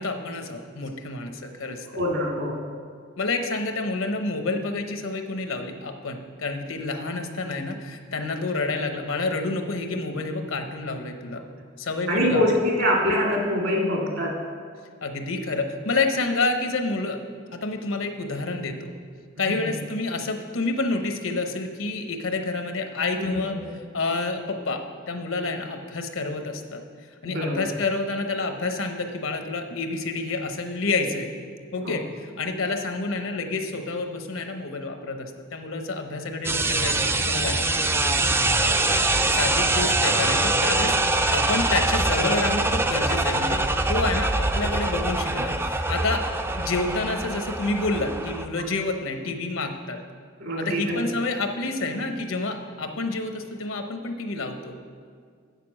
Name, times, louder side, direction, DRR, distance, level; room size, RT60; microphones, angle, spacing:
voice 1, 0.0-2.0 3.2-11.4 11.8-12.5 15.0-17.2 17.5-18.9 19.4-23.6 23.9-26.8 27.2-31.3 31.7-37.9 39.3-43.6 43.9-50.0 50.6-54.7, left 3 dB, 80° left, 6 dB, 0.9 m, -29 dB
voice 2, 1.9-2.6 12.1-14.3 19.4-19.7 23.2-23.8 27.2-27.7 31.8-32.0 38.0-38.2 48.5-48.6 50.4-51.0, left 1 dB, 65° right, -3 dB, 2.3 m, -25 dB
sound 1, 36.4-48.5, right 2 dB, 10° right, 0.3 m, -23 dB
8.1 x 6.7 x 6.2 m, 2.1 s
head